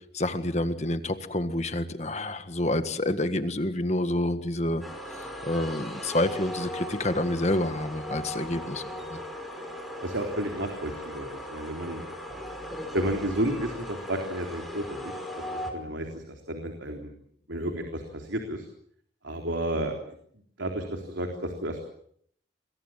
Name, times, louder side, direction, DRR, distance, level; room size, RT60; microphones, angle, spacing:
voice 1, 0.1-4.8 5.2-9.2, left 1 dB, 35° left, 9 dB, 1.7 m, -28 dB
sound 1, 4.8-15.7, equal, ahead, 5.0 m, -38 dB
voice 2, 10.0-12.0 12.9-15.1 15.5-17.1 17.5-18.7 19.2-20.1 20.6-21.8, right 1 dB, 90° right, 3 dB, 3.8 m, -32 dB
28.5 x 22.0 x 7.5 m, 0.66 s
head